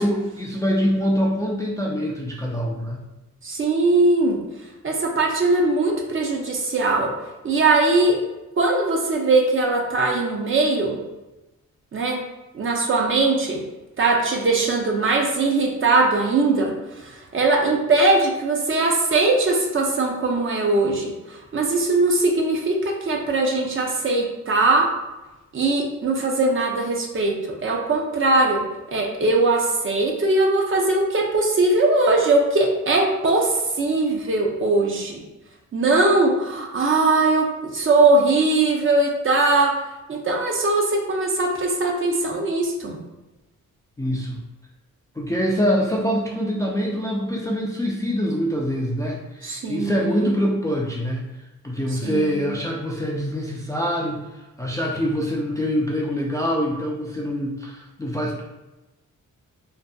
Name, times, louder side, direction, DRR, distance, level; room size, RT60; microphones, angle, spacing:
voice 1, 0.0-3.0 44.0-44.4 45.2-51.2 51.6-58.4, equal, 10° left, -2 dB, 0.3 m, -24 dB
voice 2, 3.4-4.4 4.8-7.1 7.4-8.2 8.6-11.0 11.9-12.2 12.5-13.6 14.0-24.9 25.5-28.6 28.9-35.2 35.7-39.7 40.1-43.0 49.4-50.4 52.0-52.5, right 2 dB, 40° right, 1 dB, 0.5 m, -20 dB
2.6 x 2.5 x 2.2 m, 1.0 s
cardioid pair, 85°, 31 cm